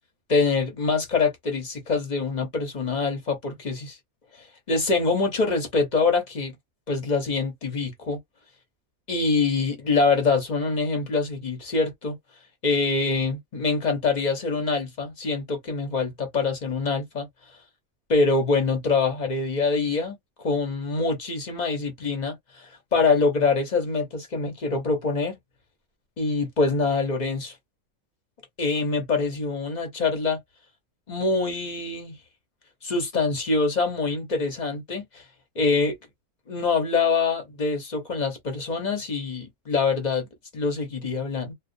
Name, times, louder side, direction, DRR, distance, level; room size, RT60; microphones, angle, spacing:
voice 1, 0.3-4.0 4.3-6.5 6.9-8.2 9.1-12.2 12.6-17.3 18.1-25.4 26.2-27.6 28.6-30.4 31.1-32.2 32.8-35.2 35.5-36.0 36.5-40.3 40.5-41.5, left 4 dB, 35° left, 0.8 m, -25 dB
2.3 x 2.2 x 2.5 m
omnidirectional pair, 1.5 m